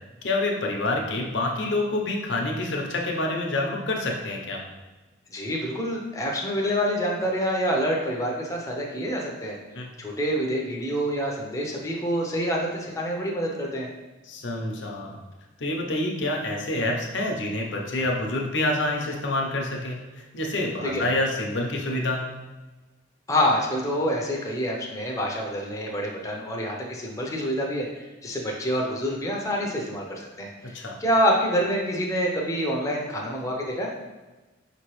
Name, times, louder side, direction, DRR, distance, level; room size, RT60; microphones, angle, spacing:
voice 1, 0.2-4.6 9.7-9.9 14.2-15.2 15.6-20.0 20.3-22.2 30.7-30.9, left 2 dB, 70° left, 0 dB, 0.7 m, -27 dB
voice 2, 5.3-9.6 10.0-13.9 20.8-21.1 23.3-33.9, equal, 15° left, -2 dB, 0.6 m, -27 dB
5.3 x 3.0 x 3.1 m, 1.2 s
head